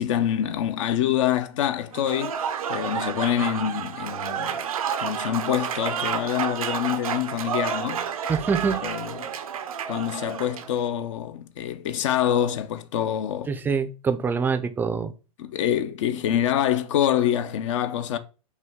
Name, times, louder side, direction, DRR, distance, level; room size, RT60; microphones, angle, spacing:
voice 1, 0.0-2.4 2.7-4.6 5.0-8.0 8.7-9.3 9.9-13.5 15.4-18.2, left 10 dB, 60° left, 0.5 m, -26 dB
Applause / Crowd, 1.9-10.8, right 7 dB, 85° right, 0.6 m, -30 dB
voice 2, 8.3-8.8 13.5-15.1, right 5 dB, 10° right, 0.4 m, -25 dB
5.7 x 2.3 x 3.5 m
hypercardioid pair, 120°, 18 cm